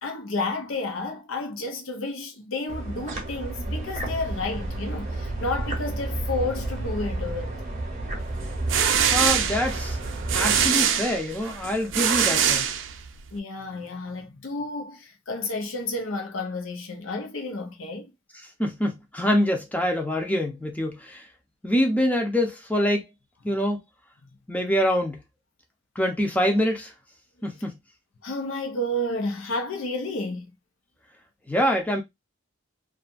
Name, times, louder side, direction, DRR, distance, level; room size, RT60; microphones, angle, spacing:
voice 1, 0.0-7.6 9.0-9.2 13.3-18.1 28.2-30.5, left 2 dB, 90° left, 0.7 m, -31 dB
sound 1, 2.7-10.7, right 2 dB, 35° right, 0.8 m, -31 dB
sound 2, 8.4-13.3, right 8 dB, 70° right, 0.4 m, -24 dB
voice 2, 9.1-10.0 10.3-12.7 18.6-21.3 21.6-23.1 23.4-23.8 24.5-25.2 26.0-26.9 27.4-27.7 31.5-32.0, equal, 10° left, 0.5 m, -25 dB
2.6 x 2.4 x 2.4 m
head